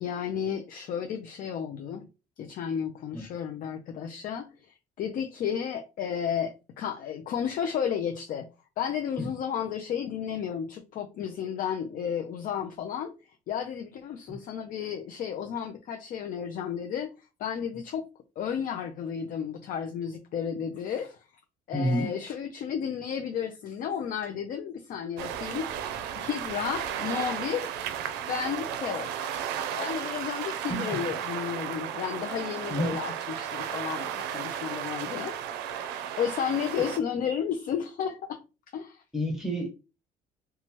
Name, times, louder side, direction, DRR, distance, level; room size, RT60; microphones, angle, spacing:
voice 1, 0.0-2.0 2.4-8.5 8.8-13.1 13.5-17.1 17.4-18.0 18.4-21.2 21.7-27.7 28.3-29.1 29.8-35.4 35.7-35.9 36.2-38.4 38.7-39.0, left 8 dB, 55° left, 0.4 m, -32 dB
voice 2, 21.7-22.1 30.7-31.0 32.7-33.0 36.8-36.9 39.1-39.7, equal, ahead, 1.1 m, -29 dB
sound 1, 25.2-37.0, right 9 dB, 85° right, 0.4 m, -34 dB
2.8 x 2.2 x 3.0 m
cardioid pair, 110°, 17 cm